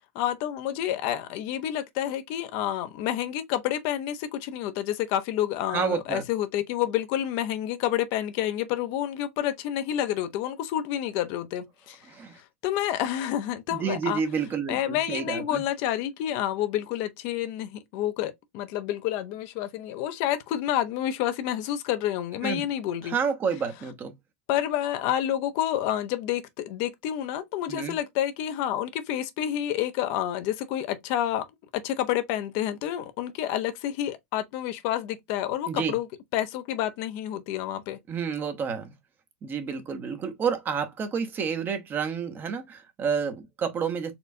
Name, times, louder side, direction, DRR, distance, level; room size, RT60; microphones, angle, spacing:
voice 1, 0.2-12.0 12.6-14.2 14.7-23.2 24.5-31.4 31.7-36.1 36.3-38.0, left 11 dB, 60° left, 0.6 m, -29 dB
voice 2, 5.7-6.2 12.1-12.4 13.7-15.6 22.4-22.7 23.0-24.1 27.7-27.9 35.7-35.9 38.1-38.9 39.4-44.1, right 6 dB, 30° right, 0.8 m, -29 dB
4.3 x 2.4 x 2.6 m
hypercardioid pair, 105°, 7 cm